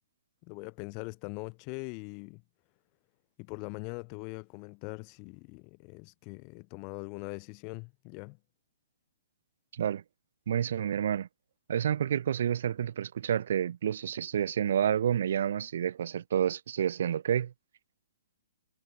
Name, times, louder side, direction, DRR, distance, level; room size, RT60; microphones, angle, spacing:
voice 1, 0.4-2.4 3.4-8.4, left 37 dB, 25° left, 3.9 m, -42 dB
voice 2, 10.5-11.3 11.7-17.5, right 9 dB, 55° right, 0.6 m, -29 dB
hypercardioid pair, 160°, 0 cm